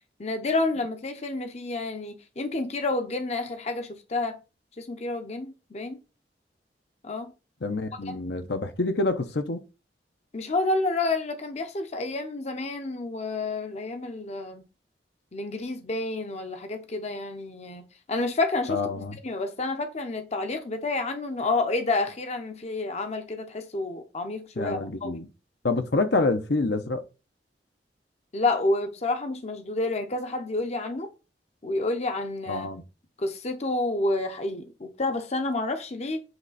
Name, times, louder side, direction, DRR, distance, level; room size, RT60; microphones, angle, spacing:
voice 1, 0.2-4.4 4.8-6.0 7.0-7.3 10.3-14.6 15.3-25.2 28.3-31.1 31.6-32.7 33.2-36.2, left 2 dB, 40° left, 0.7 m, -29 dB
voice 2, 7.6-9.6 18.7-19.2 24.6-25.3 25.6-27.0 32.5-32.8, left 3 dB, 70° left, 0.8 m, -27 dB
8.0 x 3.2 x 4.0 m
head